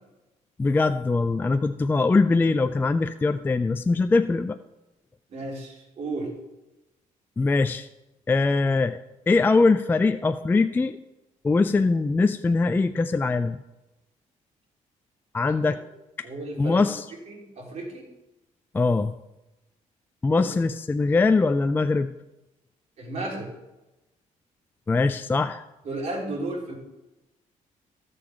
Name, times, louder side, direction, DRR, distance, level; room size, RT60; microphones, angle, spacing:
voice 1, 0.6-4.6 7.4-7.9 8.3-9.0 9.3-11.0 11.4-13.6 15.3-15.8 16.6-17.1 18.7-19.1 20.2-22.1 24.9-25.6, left 3 dB, 15° left, 10 dB, 0.3 m, -22 dB
voice 2, 5.3-6.3 16.2-16.8 17.3-18.1 20.4-20.5 23.0-23.5 25.8-26.8, right 2 dB, 60° right, -1 dB, 3.5 m, -33 dB
14.0 x 6.8 x 5.4 m, 0.99 s
cardioid pair, 135°, 14 cm